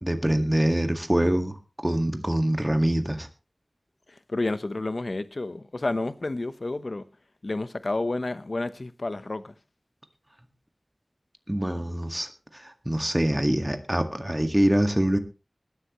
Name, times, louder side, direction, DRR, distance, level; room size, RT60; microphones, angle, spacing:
voice 1, 0.0-3.3 11.5-15.2, right 1 dB, 15° right, 1.9 m, -25 dB
voice 2, 4.3-7.0 7.4-9.5, left 2 dB, 65° left, 1.0 m, -30 dB
20.0 x 11.0 x 3.1 m
wide cardioid pair, 45°, 0 cm